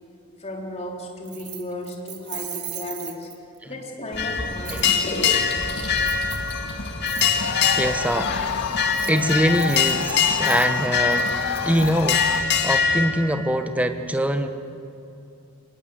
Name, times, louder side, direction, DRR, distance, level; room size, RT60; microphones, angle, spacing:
voice 1, 0.4-3.3 3.7-5.5, left 1 dB, 30° left, 0 dB, 3.6 m, -34 dB
Keys jangling, 1.3-3.6 4.7-4.9 6.0-6.5 7.1-7.3 8.8-12.2, right 13 dB, 50° right, 1.7 m, -37 dB
sound 1, 4.1-13.0, left 6 dB, 55° left, 2.0 m, -23 dB
voice 2, 7.3-8.3 9.0-11.3 11.6-14.5, equal, 5° right, 8 dB, 1.1 m, -24 dB
sound 2, 7.4-12.4, left 7 dB, 75° left, 0.5 m, -30 dB
24.5 x 19.5 x 7.9 m, 2.6 s
head